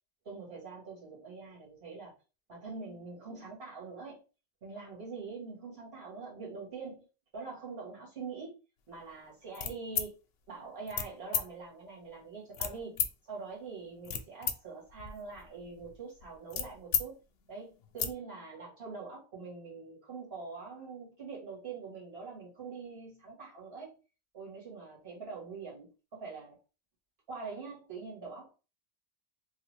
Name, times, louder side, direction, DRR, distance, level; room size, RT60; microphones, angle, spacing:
voice 1, 0.2-2.1 2.5-4.2 4.6-7.1 7.3-8.6 8.9-10.2 10.5-17.2 17.5-24.0 24.3-26.6 27.3-28.5, right 4 dB, 75° right, 1.7 m, -44 dB
sound 1, 9.5-10.1 10.9-11.1 11.3-11.4 12.5-13.1 13.8-14.5 14.9-17.1 17.4-17.5 17.8-18.1, left 7 dB, 75° left, 0.8 m, -33 dB
3.2 x 2.3 x 3.1 m
omnidirectional pair, 1.1 m